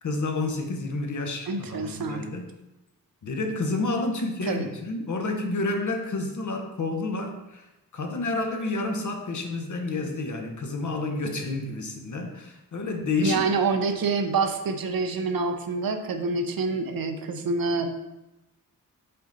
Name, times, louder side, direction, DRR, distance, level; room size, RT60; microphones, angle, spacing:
voice 1, 0.0-2.5 3.2-7.7 7.9-13.5, left 2 dB, 55° left, 4 dB, 0.9 m, -29 dB
voice 2, 1.5-2.3 4.5-4.6 13.2-17.9, right 4 dB, 70° right, 6 dB, 0.7 m, -26 dB
5.5 x 5.4 x 3.9 m, 0.96 s
wide cardioid pair, 180°, 36 cm